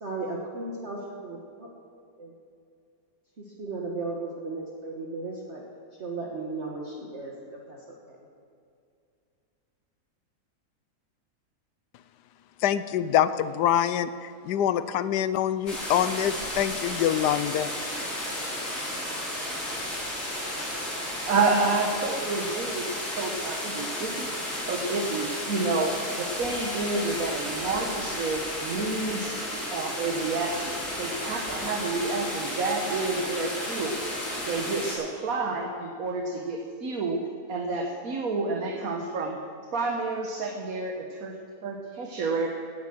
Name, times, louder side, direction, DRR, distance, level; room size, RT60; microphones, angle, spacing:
voice 1, 0.0-1.7 2.2-2.3 3.4-5.6 6.0-7.8 8.1-8.3, right 3 dB, 45° right, -2 dB, 1.6 m, -35 dB
voice 2, 12.6-17.7, left 10 dB, 85° left, 13 dB, 1.3 m, -25 dB
sound 1, 15.7-34.9, left 1 dB, 35° left, 4.9 m, -33 dB
voice 3, 21.2-22.9 23.1-24.3 24.6-29.3 29.7-34.0 34.4-37.2 37.5-39.4 39.7-41.3 41.6-42.5, right 3 dB, 60° right, 2 dB, 1.6 m, -29 dB
17.5 x 9.5 x 6.2 m, 2.4 s
omnidirectional pair, 1.7 m